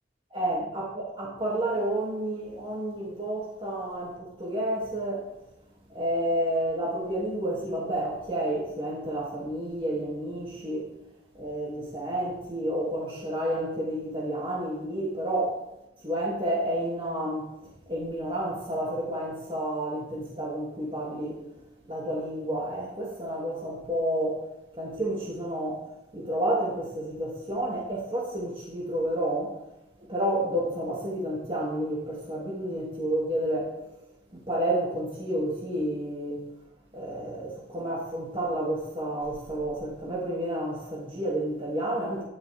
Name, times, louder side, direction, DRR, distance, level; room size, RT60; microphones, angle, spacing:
voice 1, 0.3-5.3 5.9-10.9 11.3-15.6 16.0-17.5 17.9-21.4 21.8-24.5 24.7-29.6 30.1-33.7 34.3-36.4 36.9-42.2, right 1 dB, 30° right, 2.6 m, -30 dB
12.5 x 11.5 x 3.6 m
head